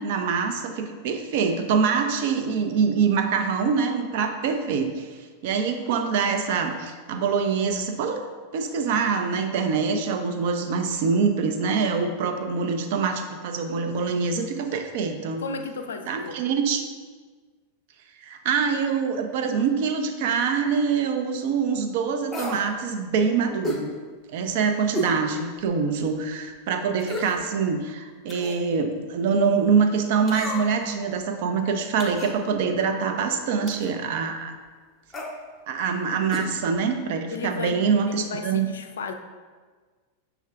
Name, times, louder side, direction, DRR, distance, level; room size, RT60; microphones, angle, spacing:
voice 1, 0.0-8.2 8.5-15.4 16.1-16.9 18.2-23.9 24.3-34.5 35.7-38.7, right 5 dB, 50° right, 6 dB, 0.4 m, -25 dB
voice 2, 15.4-16.4 37.3-39.1, left 4 dB, 65° left, 6 dB, 0.3 m, -34 dB
sound 1, 22.3-22.7 23.6-23.9 24.9-25.2 25.7-25.8 27.0-27.4 28.3-28.6 30.3-30.8 32.0-32.4 33.7-33.9 35.1-35.3 36.3-36.5 36.8-36.9, left 1 dB, 15° left, 0.7 m, -31 dB
6.3 x 3.4 x 2.3 m, 1.5 s
figure-of-eight pair, 90°, 0 cm